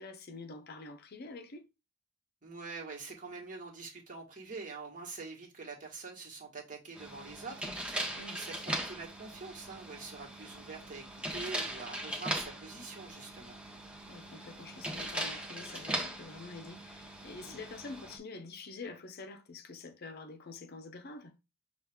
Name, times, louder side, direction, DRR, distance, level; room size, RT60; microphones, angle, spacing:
voice 1, 0.0-1.7 8.2-8.4 14.1-21.3, left 3 dB, 50° left, 0.6 m, -47 dB
voice 2, 2.4-8.0 8.3-13.6 17.3-17.6, right 4 dB, 40° right, 1.5 m, -45 dB
sound 1, 6.9-18.2, right 1 dB, 5° right, 0.9 m, -40 dB
6.4 x 2.4 x 3.4 m
head